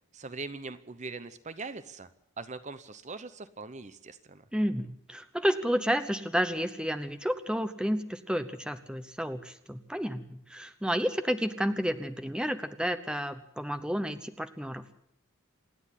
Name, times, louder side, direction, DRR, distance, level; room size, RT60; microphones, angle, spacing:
voice 1, 0.1-2.1 2.4-4.4, right 3 dB, 35° right, 12 dB, 0.8 m, -41 dB
voice 2, 4.5-14.8, equal, 5° right, 10 dB, 0.9 m, -31 dB
27.0 x 9.8 x 9.9 m, 0.74 s
head